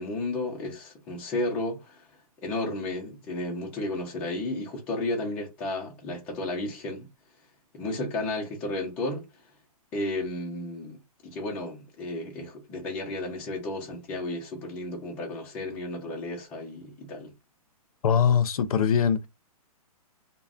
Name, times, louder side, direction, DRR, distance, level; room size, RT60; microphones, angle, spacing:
voice 1, 0.0-2.1 2.4-7.1 7.7-9.3 9.9-11.0 11.2-17.3, left 2 dB, 5° left, 0.3 m, -33 dB
voice 2, 18.0-19.3, left 7 dB, 70° left, 0.5 m, -22 dB
2.4 x 2.0 x 3.5 m
hypercardioid pair, 165°, 19 cm